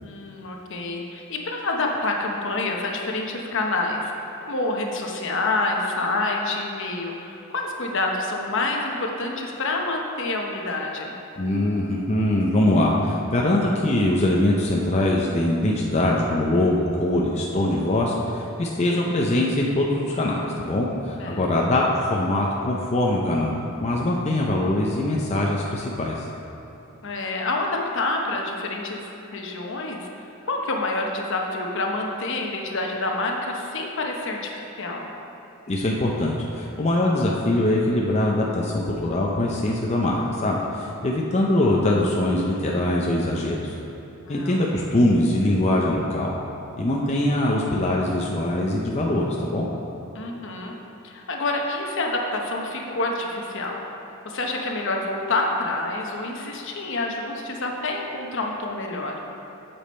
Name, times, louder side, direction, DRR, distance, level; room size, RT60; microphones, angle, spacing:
voice 1, 0.0-4.0 4.4-11.2 21.2-21.4 27.0-30.1 30.5-35.1 44.2-44.9 50.1-50.7 51.0-53.8 54.2-59.2, left 2 dB, 60° left, 1 dB, 1.0 m, -27 dB
voice 2, 11.4-26.3 35.7-43.8 44.3-46.4 46.8-49.7, left 1 dB, 30° left, -2 dB, 0.6 m, -22 dB
8.3 x 7.0 x 4.3 m, 2.9 s
head